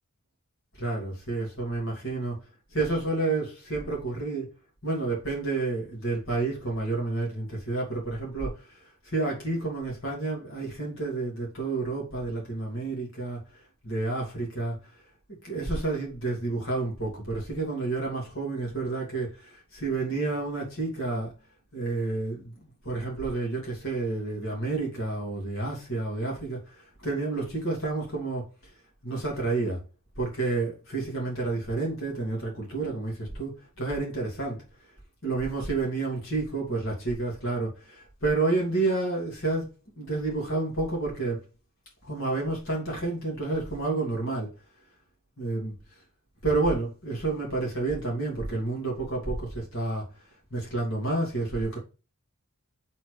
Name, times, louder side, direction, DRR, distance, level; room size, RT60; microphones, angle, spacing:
voice 1, 0.8-2.4 2.7-4.5 4.8-13.4 13.8-14.7 15.4-21.3 21.7-28.7 29.0-29.8 30.2-34.6 35.2-41.4 42.0-44.5 45.4-45.7 46.4-50.1 50.5-51.8, right 3 dB, 60° left, 2.9 m, -30 dB
7.6 x 4.3 x 3.4 m
head